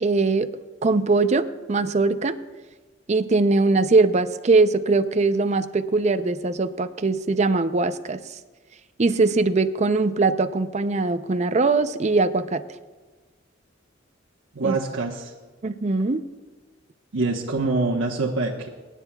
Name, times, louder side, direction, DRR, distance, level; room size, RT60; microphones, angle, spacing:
voice 1, 0.0-0.5 0.8-2.4 3.1-8.2 9.0-12.6 14.6-14.8 15.6-16.2, right 3 dB, 35° right, 10 dB, 0.5 m, -21 dB
voice 2, 14.5-15.3 17.1-18.7, right 3 dB, 90° right, -3 dB, 1.1 m, -25 dB
24.0 x 10.0 x 2.3 m, 1.3 s
head